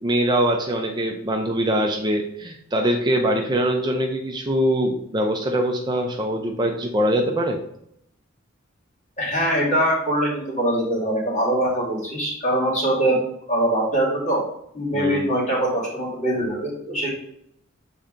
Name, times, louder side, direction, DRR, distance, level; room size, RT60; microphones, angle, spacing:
voice 1, 0.0-7.6 14.9-15.2, right 1 dB, 20° right, 2 dB, 0.5 m, -23 dB
voice 2, 9.2-13.2 13.5-14.4 14.7-17.1, right 1 dB, 35° left, -5 dB, 2.6 m, -22 dB
7.0 x 4.4 x 3.8 m, 0.73 s
head